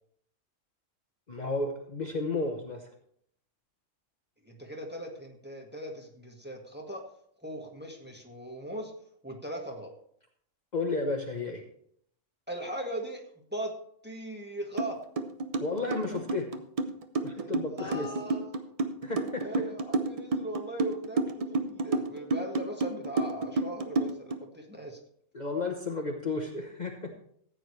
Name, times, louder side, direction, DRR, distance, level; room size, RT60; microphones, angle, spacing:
voice 1, 1.3-2.9 10.7-11.6 15.6-16.6 17.2-18.1 19.0-19.5 25.3-27.1, left 3 dB, 35° left, 2 dB, 1.1 m, -32 dB
voice 2, 4.4-7.0 7.4-8.9 9.2-9.9 12.5-13.7 14.0-15.0 17.8-18.6 19.3-25.0, right 1 dB, 10° right, 1 dB, 1.5 m, -39 dB
sound 1, 14.8-14.9 15.2-24.4, right 3 dB, 35° right, 0.6 m, -30 dB
14.5 x 8.8 x 3.2 m, 0.65 s
omnidirectional pair, 1.3 m